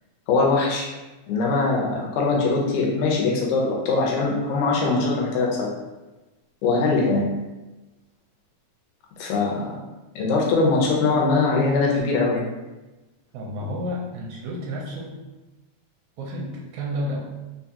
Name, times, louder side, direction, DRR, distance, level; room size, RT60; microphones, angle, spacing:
voice 1, 0.3-0.9 1.3-5.7 6.6-7.3 9.2-9.7 10.2-12.4, left 3 dB, 80° left, -2 dB, 2.1 m, -21 dB
voice 2, 13.3-15.1 16.2-17.2, equal, 80° right, -2 dB, 1.9 m, -31 dB
5.1 x 2.3 x 2.7 m, 1.1 s
omnidirectional pair, 3.5 m